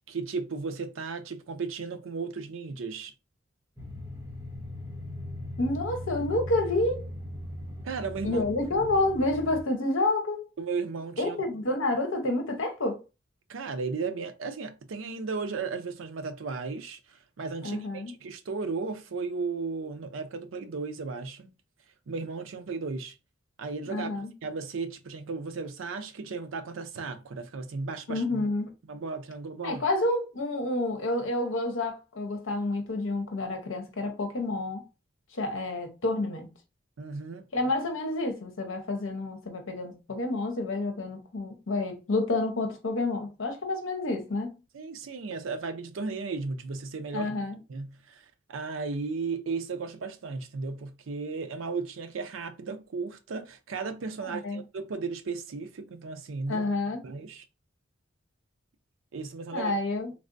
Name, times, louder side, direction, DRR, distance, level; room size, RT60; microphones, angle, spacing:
voice 1, 0.1-3.1 7.8-8.4 10.6-11.4 13.5-21.5 22.1-23.1 23.6-24.1 24.4-28.2 28.9-29.8 37.0-37.4 44.7-47.3 47.7-56.6 57.0-57.4 59.1-59.7, right 4 dB, 75° right, 0.5 m, -35 dB
sound 1, 3.8-9.6, left 1 dB, 15° right, 0.9 m, -39 dB
voice 2, 5.6-7.1 8.2-10.5 11.2-13.0 17.6-18.1 23.9-24.3 28.1-28.7 29.6-34.8 35.3-36.5 37.5-44.5 47.1-47.6 54.3-54.6 56.5-57.0 59.5-60.1, left 2 dB, 75° left, 0.8 m, -29 dB
3.3 x 2.4 x 2.5 m
head